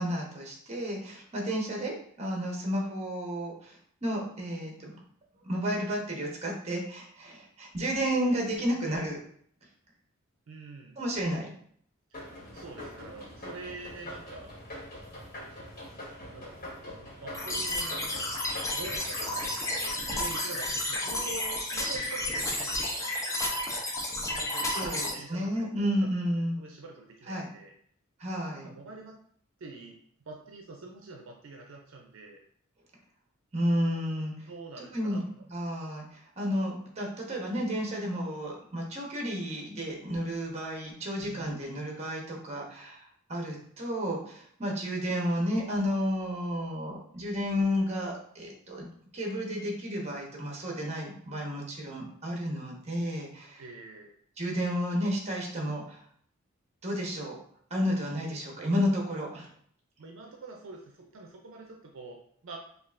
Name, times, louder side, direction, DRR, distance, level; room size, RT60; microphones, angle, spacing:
voice 1, 0.0-4.9 5.4-9.2 11.0-11.5 24.7-26.5 27.3-27.5 28.2-28.7 33.5-34.3 34.9-35.2 35.5-48.9 49.1-53.6 54.4-56.0 56.8-57.3 57.7-59.5, equal, 30° right, -1 dB, 1.0 m, -32 dB
voice 2, 10.5-11.0 12.1-14.5 16.3-18.2 18.7-19.5 19.8-23.4 24.3-25.9 26.6-27.7 28.6-29.2 29.6-32.4 34.5-35.2 41.2-41.6 53.6-54.1 60.0-62.6, right 3 dB, 70° right, 1 dB, 0.5 m, -45 dB
sound 1, 12.1-21.2, left 1 dB, 40° left, 1.5 m, -44 dB
sound 2, 17.3-25.1, left 1 dB, 15° left, 0.6 m, -32 dB
5.3 x 2.4 x 2.5 m, 0.63 s
head